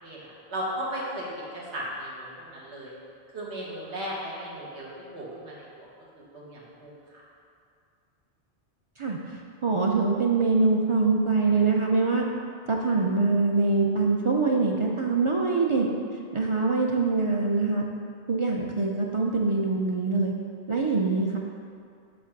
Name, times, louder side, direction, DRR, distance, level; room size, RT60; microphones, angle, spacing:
voice 1, 0.0-2.9 3.3-5.9 6.1-7.2, equal, 80° right, -5 dB, 1.7 m, -36 dB
voice 2, 9.6-12.2 12.7-15.9 16.3-17.8 18.3-20.3 20.7-21.4, right 3 dB, 40° right, -1 dB, 0.5 m, -24 dB
7.4 x 3.4 x 5.9 m, 2.3 s
omnidirectional pair, 1.1 m